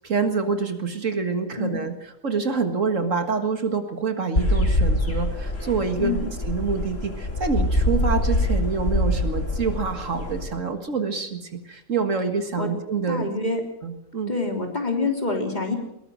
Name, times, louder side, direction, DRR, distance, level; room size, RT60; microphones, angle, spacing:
voice 1, 0.0-13.3 13.8-14.4, right 5 dB, 60° right, 7 dB, 2.1 m, -26 dB
sound 1, 4.4-10.4, left 1 dB, 55° left, 4.3 m, -24 dB
voice 2, 6.0-6.3 12.6-12.7 13.1-13.6 14.3-15.8, left 3 dB, 30° left, 2 dB, 3.5 m, -26 dB
21.5 x 19.5 x 6.5 m, 0.83 s
omnidirectional pair, 1.5 m